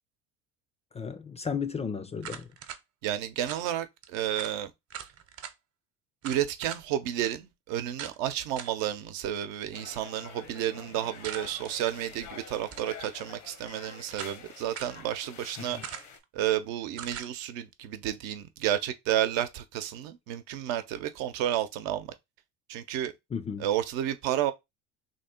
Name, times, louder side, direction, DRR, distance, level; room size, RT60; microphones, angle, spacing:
voice 1, 0.9-2.5 15.6-15.8 23.3-23.7, left 6 dB, 20° left, 0.4 m, -34 dB
sound 1, 2.2-2.8 3.5-3.7 4.0-4.1 4.4-4.6 4.9-5.5 6.2-6.8 7.2-7.3 8.0-8.2 8.6-8.8 11.2-11.7 12.6-13.0 13.7-14.4 14.7-15.0 15.8-16.2 17.0-17.3, right 8 dB, 45° right, 0.9 m, -41 dB
voice 2, 3.0-4.7 6.2-15.8 16.3-22.1 22.7-23.1 23.6-24.5, right 11 dB, 75° right, 0.8 m, -31 dB
sound 2, 9.7-16.2, left 7 dB, 80° left, 1.0 m, -47 dB
3.1 x 2.6 x 4.3 m
supercardioid pair, 90°, 34 cm